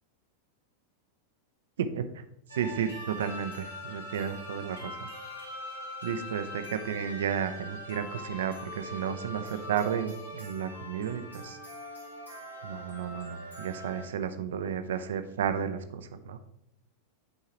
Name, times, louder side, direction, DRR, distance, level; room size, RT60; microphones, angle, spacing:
sound 1, 2.5-14.1, equal, 80° left, 1.5 m, -42 dB
voice 1, 2.6-5.1 6.0-11.6 12.6-16.4, right 8 dB, 60° right, 10 dB, 0.6 m, -33 dB
9.7 x 4.7 x 2.9 m, 0.74 s
figure-of-eight pair, 90°, 0 cm